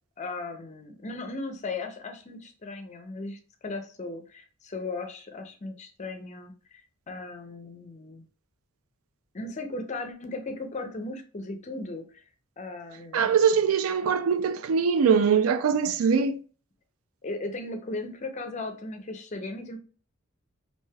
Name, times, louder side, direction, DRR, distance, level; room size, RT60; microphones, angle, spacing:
voice 1, 0.2-8.3 9.3-12.2 12.6-13.4 17.2-19.8, left 2 dB, 35° left, 0.5 m, -37 dB
voice 2, 13.1-16.4, right 6 dB, 90° right, 0.4 m, -22 dB
3.2 x 2.6 x 2.2 m
head